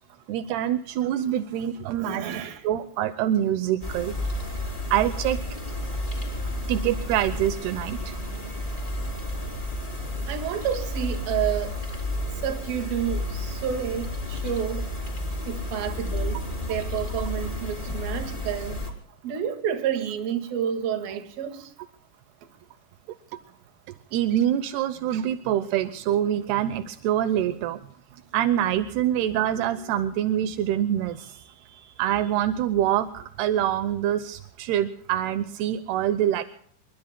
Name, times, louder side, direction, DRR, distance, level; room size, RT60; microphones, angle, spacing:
voice 1, 0.3-4.1 4.9-5.4 6.7-8.1 24.1-27.8 28.3-36.4, right 11 dB, 80° right, 2.5 m, -25 dB
voice 2, 2.0-2.6 10.3-11.8 12.4-14.8 15.5-16.4 16.7-18.8 19.2-21.7, right 9 dB, 60° right, 3.4 m, -29 dB
sound 1, 3.8-18.9, left 1 dB, 10° left, 2.9 m, -31 dB
28.0 x 23.5 x 2.2 m
omnidirectional pair, 5.3 m